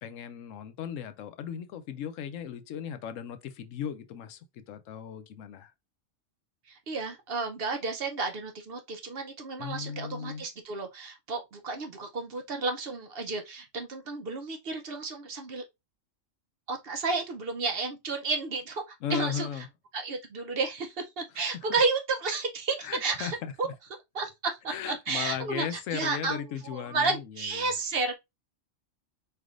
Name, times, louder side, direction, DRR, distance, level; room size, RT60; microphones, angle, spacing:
voice 1, 0.0-5.7 9.6-10.4 19.0-19.7 22.8-23.7 24.7-27.7, left 8 dB, 80° left, 1.0 m, -36 dB
voice 2, 6.7-15.6 16.7-19.5 19.9-23.7 24.1-28.1, right 3 dB, 55° right, 0.8 m, -32 dB
4.5 x 3.3 x 2.5 m
omnidirectional pair, 1.3 m